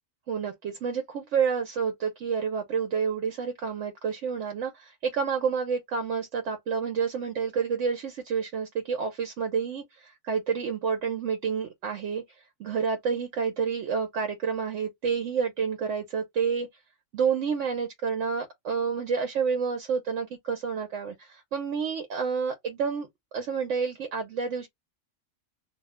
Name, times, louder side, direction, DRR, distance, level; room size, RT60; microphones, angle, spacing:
voice 1, 0.3-12.2 12.6-16.7 17.1-23.1 23.3-24.7, right 6 dB, 75° right, 1.0 m, -29 dB
2.7 x 2.0 x 3.5 m
omnidirectional pair, 1.3 m